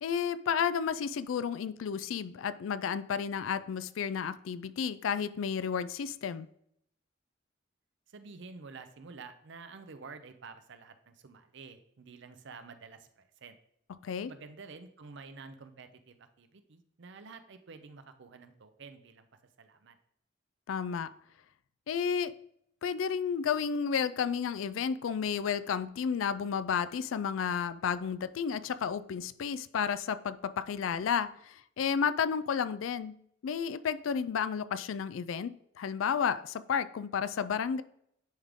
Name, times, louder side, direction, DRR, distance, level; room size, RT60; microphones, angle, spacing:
voice 1, 0.0-6.5 14.0-14.3 20.7-21.1 21.9-22.3 22.8-37.8, left 7 dB, 85° left, 14 dB, 0.4 m, -32 dB
voice 2, 8.1-13.6 14.3-19.3 19.6-20.0, right 4 dB, 65° right, 9 dB, 0.6 m, -50 dB
10.5 x 3.6 x 3.6 m, 0.72 s
head